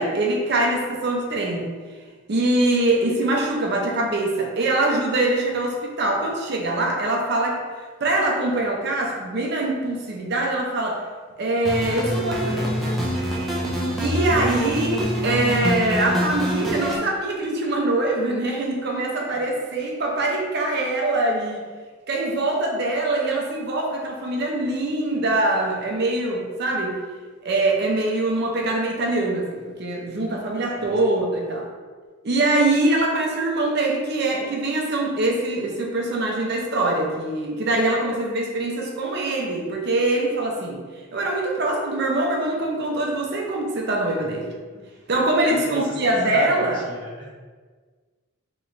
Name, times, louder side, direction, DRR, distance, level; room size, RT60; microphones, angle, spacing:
voice 1, 0.0-1.6 2.3-7.6 8.0-11.0 11.4-12.7 14.0-21.6 22.1-27.0 27.4-31.7 32.2-40.8 41.1-44.5 45.1-46.8, right 2 dB, 50° right, 0 dB, 0.6 m, -23 dB
sound 1, 11.6-17.0, equal, ahead, 0.5 m, -25 dB
voice 2, 45.4-47.4, equal, 20° left, -5 dB, 0.8 m, -38 dB
3.2 x 3.0 x 3.8 m, 1.5 s
head